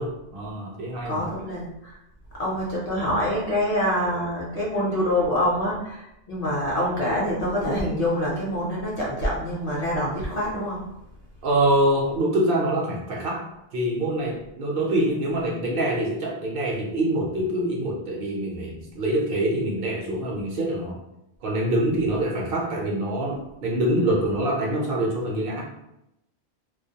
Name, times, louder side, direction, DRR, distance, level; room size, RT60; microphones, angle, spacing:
voice 1, 0.0-1.3 11.4-21.0 21.4-25.6, right 1 dB, 65° right, -2 dB, 0.7 m, -25 dB
voice 2, 1.0-2.0 2.4-10.8, equal, 45° left, -6 dB, 0.6 m, -26 dB
2.2 x 2.1 x 2.7 m, 0.85 s
omnidirectional pair, 1.1 m